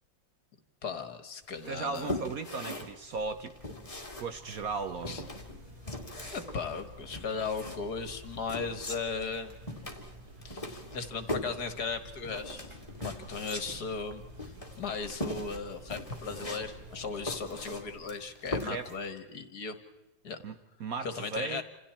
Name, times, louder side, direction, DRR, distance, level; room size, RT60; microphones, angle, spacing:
voice 1, 0.8-2.2 5.1-5.2 6.3-9.5 10.4-12.7 13.0-19.8 20.2-20.4 21.0-21.6, left 5 dB, 55° left, 9 dB, 2.1 m, -37 dB
sound 1, 1.6-19.1, left 1 dB, 15° left, 2.6 m, -40 dB
voice 2, 1.6-3.6 4.2-5.3 18.6-18.9 20.4-20.5 20.8-21.6, right 4 dB, 55° right, 9 dB, 1.3 m, -36 dB
Buzz, 3.1-18.1, left 2 dB, 15° right, 2.4 m, -53 dB
sound 2, 4.5-17.3, right 7 dB, 85° right, 2.1 m, -53 dB
28.5 x 27.5 x 4.4 m, 1.0 s
omnidirectional pair, 2.1 m